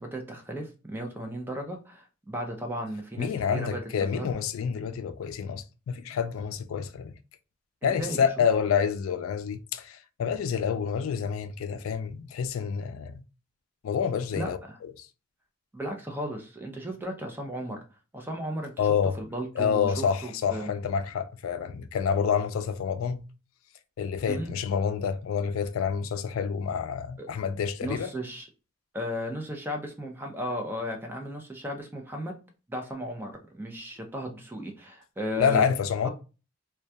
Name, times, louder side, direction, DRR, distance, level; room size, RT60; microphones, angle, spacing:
voice 1, 0.0-3.8 4.1-4.3 7.8-8.2 14.3-14.5 15.7-17.8 18.1-18.7 19.2-20.7 24.3-24.5 27.2-27.3 27.8-28.5 28.9-32.3 32.7-35.6 36.0-36.1, equal, 10° right, 0.4 m, -35 dB
voice 2, 3.2-7.1 7.8-13.2 13.8-15.1 18.8-19.1 19.6-23.3 24.0-28.1 35.4-36.1, left 7 dB, 85° left, 0.3 m, -28 dB
2.2 x 2.2 x 2.6 m
head